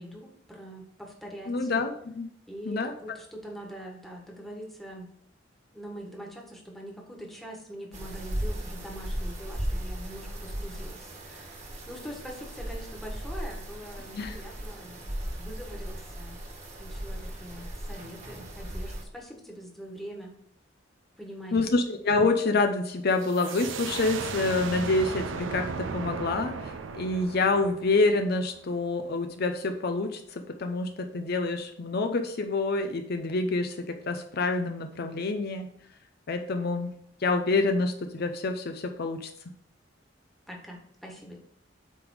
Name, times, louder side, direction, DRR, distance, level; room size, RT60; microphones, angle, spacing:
voice 1, 0.0-1.7 2.5-5.1 5.7-16.4 16.8-20.3 21.2-21.7 40.5-41.4, equal, ahead, -1 dB, 1.5 m, -43 dB
voice 2, 1.5-2.3 2.7-2.9 14.1-14.4 21.5-35.7 36.3-36.9 37.2-39.3, left 3 dB, 55° left, 6 dB, 0.6 m, -27 dB
sound 1, 7.9-19.0, right 1 dB, 40° right, 1.5 m, -37 dB
sound 2, 23.2-28.7, right 5 dB, 85° right, 0.5 m, -36 dB
8.4 x 3.5 x 4.7 m, 0.68 s
head